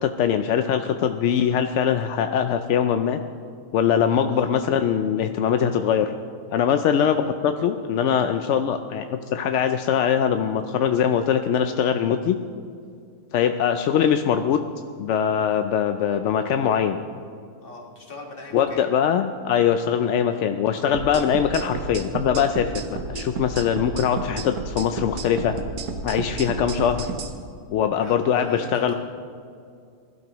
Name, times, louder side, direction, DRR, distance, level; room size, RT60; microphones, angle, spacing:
voice 1, 0.0-3.2 3.7-6.1 6.5-12.4 13.3-14.6 15.0-17.0 18.5-25.5 26.0-27.1 27.7-28.9, left 8 dB, 70° left, 7 dB, 0.7 m, -22 dB
voice 2, 17.6-18.8 26.2-26.5 28.0-28.9, left 2 dB, 35° left, 0 dB, 1.8 m, -40 dB
sound 1, 20.9-27.3, right 4 dB, 70° right, 1.5 m, -31 dB
20.5 x 12.5 x 3.0 m, 2.3 s
omnidirectional pair, 1.6 m